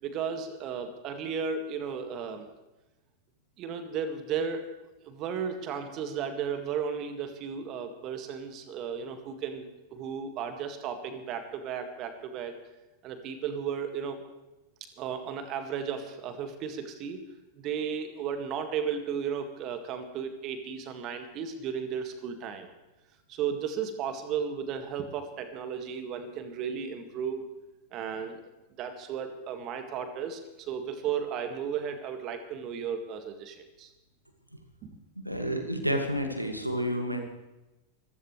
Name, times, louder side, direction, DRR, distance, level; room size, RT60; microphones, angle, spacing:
voice 1, 0.0-2.5 3.6-4.7 5.0-12.5 13.0-14.2 15.0-17.2 17.6-22.7 23.3-27.5 27.9-28.4 28.8-33.9 34.8-34.9, right 7 dB, 35° right, 7 dB, 2.0 m, -34 dB
voice 2, 35.2-37.2, equal, 90° right, 5 dB, 2.2 m, -30 dB
26.0 x 15.0 x 3.3 m, 1.0 s
figure-of-eight pair, 90°, 0 cm